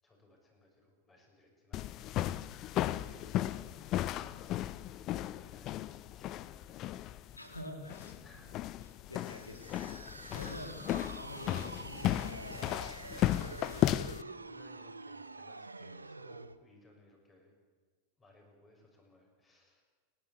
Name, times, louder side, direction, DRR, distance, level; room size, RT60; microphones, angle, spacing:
voice 1, 0.0-2.2 2.7-7.0 8.1-8.6 14.2-17.5 18.2-19.8, left 1 dB, 20° left, 2 dB, 6.8 m, -62 dB
sound 1, 1.7-14.2, left 13 dB, 35° left, 0.7 m, -35 dB
voice 2, 7.3-8.2 9.1-13.1, left 1 dB, 85° left, 5 dB, 3.4 m, -48 dB
sound 2, 9.1-16.6, right 3 dB, 80° right, 0.8 m, -47 dB
29.0 x 12.0 x 8.3 m, 1.5 s
figure-of-eight pair, 90°, 0 cm